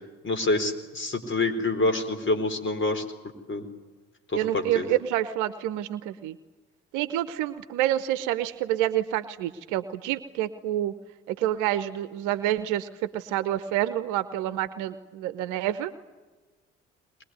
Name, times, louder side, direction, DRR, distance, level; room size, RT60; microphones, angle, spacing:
voice 1, 0.2-3.0 3.5-3.6 4.3-4.9, left 2 dB, 35° left, 8 dB, 4.4 m, -26 dB
voice 2, 4.3-6.4 6.9-10.9 11.3-15.9, right 13 dB, 70° right, 13 dB, 0.9 m, -28 dB
22.0 x 21.5 x 9.6 m, 1.2 s
hypercardioid pair, 45°, 32 cm